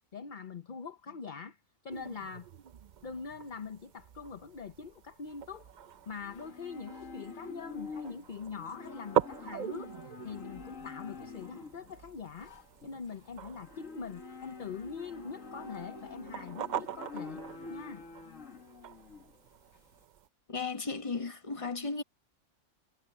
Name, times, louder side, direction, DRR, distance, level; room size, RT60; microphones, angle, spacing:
voice 1, 0.1-1.6 1.8-2.5 3.0-5.7 6.1-9.9 10.2-12.5 12.8-17.4 17.7-18.0, left 5 dB, 45° left, 0.9 m, -43 dB
sound 1, 1.9-20.3, right 9 dB, 60° right, 0.5 m, -42 dB
Livestock farm animals working animals, 5.2-20.0, left 4 dB, 85° left, 2.1 m, -47 dB
voice 2, 20.5-22.0, left 4 dB, 25° left, 1.3 m, -35 dB
omnidirectional pair, 1.3 m